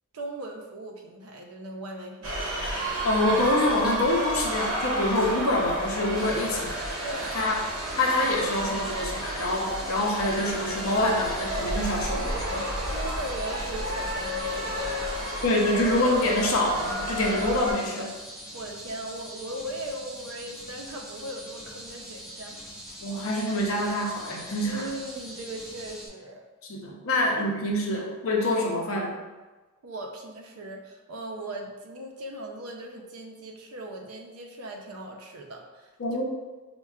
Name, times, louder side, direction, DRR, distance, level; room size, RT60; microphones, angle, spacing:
voice 1, 0.1-2.4 7.0-7.4 12.9-15.1 18.5-22.6 24.6-26.4 27.1-27.5 27.9-28.0 29.8-35.9, right 1 dB, 80° right, 1 dB, 0.6 m, -38 dB
sound 1, 2.2-17.7, right 1 dB, 65° right, 0.9 m, -31 dB
voice 2, 3.0-6.8 7.3-7.6 8.0-12.7 15.4-18.1 23.0-24.9 26.7-29.2 36.0-36.2, left 1 dB, 65° left, -1 dB, 0.6 m, -26 dB
sound 2, 6.1-26.1, equal, ahead, 0.7 m, -43 dB
5.4 x 2.2 x 2.3 m, 1.2 s
head